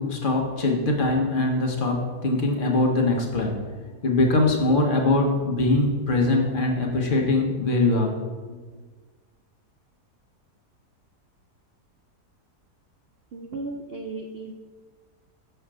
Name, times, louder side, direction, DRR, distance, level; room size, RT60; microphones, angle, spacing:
voice 1, 0.0-3.7 4.0-8.2, left 2 dB, 40° left, 1 dB, 0.9 m, -22 dB
voice 2, 13.3-14.5, right 3 dB, 90° right, 2 dB, 0.5 m, -35 dB
6.4 x 3.4 x 6.1 m, 1.4 s
omnidirectional pair, 1.7 m